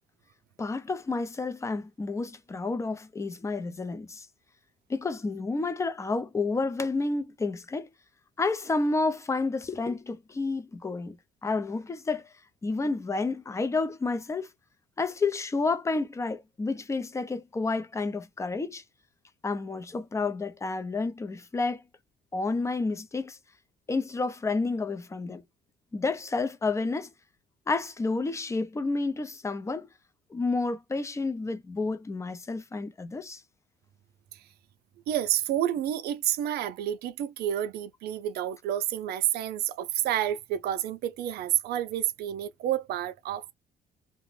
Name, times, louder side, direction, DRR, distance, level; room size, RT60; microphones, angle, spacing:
voice 1, 0.6-4.3 4.9-7.9 8.4-11.2 11.4-12.2 12.6-14.5 15.0-18.8 19.4-21.8 22.3-23.4 23.9-25.4 25.9-27.1 27.7-29.9 30.3-33.4, left 3 dB, 15° left, 0.5 m, -30 dB
voice 2, 35.1-43.4, right 11 dB, 70° right, 0.5 m, -29 dB
2.5 x 2.1 x 3.1 m
cardioid pair, 110°, 17 cm